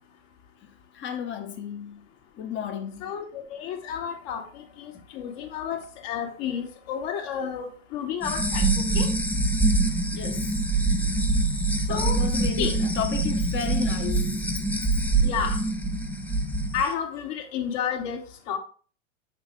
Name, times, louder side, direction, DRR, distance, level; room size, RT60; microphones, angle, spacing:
voice 1, 0.9-2.0 2.4-3.1 10.1-10.5 11.0-11.1 11.9-14.4, left 8 dB, 30° left, 1.3 m, -33 dB
voice 2, 3.0-9.1 11.9-12.3 12.6-12.8 15.2-15.6 16.7-18.6, left 7 dB, 50° left, 2.4 m, -31 dB
sound 1, 8.2-16.8, right 2 dB, 5° left, 0.7 m, -24 dB
7.1 x 6.7 x 3.3 m
hypercardioid pair, 120°, 39 cm